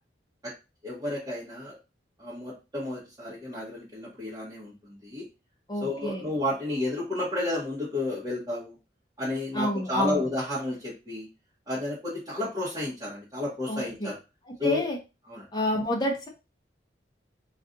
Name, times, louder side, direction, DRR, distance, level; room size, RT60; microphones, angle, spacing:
voice 1, 0.8-1.8 2.2-5.2 5.8-8.8 9.2-11.3 11.7-14.2 14.6-14.9 15.3-15.5, left 2 dB, 20° right, -9 dB, 0.9 m, -32 dB
voice 2, 5.7-6.2 9.5-10.2 13.7-14.1 14.6-15.0 15.5-16.3, left 1 dB, 25° left, 1 dB, 0.7 m, -28 dB
2.5 x 2.4 x 3.7 m, 0.28 s
head